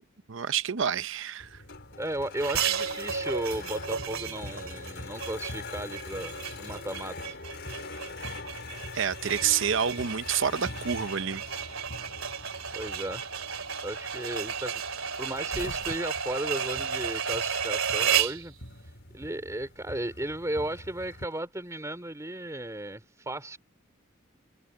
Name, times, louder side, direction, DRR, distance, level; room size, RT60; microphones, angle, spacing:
voice 1, 0.3-1.6 8.9-11.4, right 8 dB, 65° right, 0.7 m, -28 dB
sound 1, 1.4-21.3, left 3 dB, 60° left, 5.6 m, -43 dB
voice 2, 2.0-6.3 6.6-7.4 12.7-13.2 13.8-18.5 19.1-23.6, right 1 dB, 15° right, 3.1 m, -35 dB
sound 2, 2.4-18.5, right 7 dB, 85° right, 2.6 m, -33 dB
sound 3, 15.5-17.7 18.0-19.1 20.3-21.8, left 1 dB, 85° left, 3.4 m, -45 dB
head